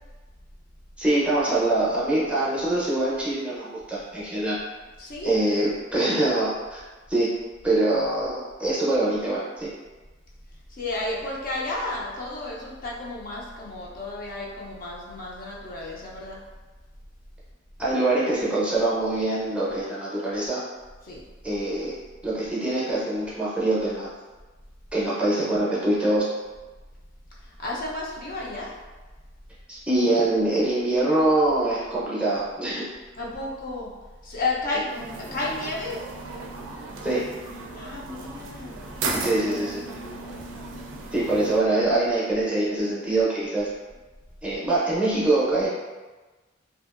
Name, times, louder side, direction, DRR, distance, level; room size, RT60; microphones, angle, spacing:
voice 1, 1.0-4.6 5.2-6.8 7.1-7.3 7.6-9.7 17.8-20.6 21.4-21.9 22.2-24.1 24.9-26.3 29.7-32.9 37.0-37.2 39.2-39.8 41.1-43.7 44.4-45.7, right 2 dB, 5° right, -8 dB, 0.6 m, -24 dB
voice 2, 5.0-5.4 10.7-16.4 21.0-21.2 27.4-28.7 33.2-33.9 34.2-36.0 37.7-38.8 41.1-41.3, left 2 dB, 45° left, -4 dB, 0.5 m, -32 dB
sound 1, 34.9-41.6, right 3 dB, 85° right, 0.4 m, -35 dB
2.7 x 2.4 x 2.4 m, 1.2 s
head